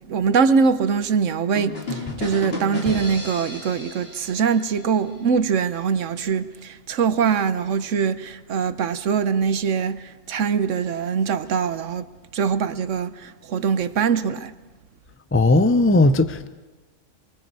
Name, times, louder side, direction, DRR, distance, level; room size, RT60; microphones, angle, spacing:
voice 1, 0.1-12.0 12.3-14.5, right 6 dB, 75° right, 1.2 m, -23 dB
sound 1, 1.5-5.3, left 2 dB, 50° left, 3.2 m, -33 dB
voice 2, 15.3-16.5, left 2 dB, 20° left, 0.3 m, -17 dB
28.0 x 22.5 x 4.7 m
omnidirectional pair, 1.3 m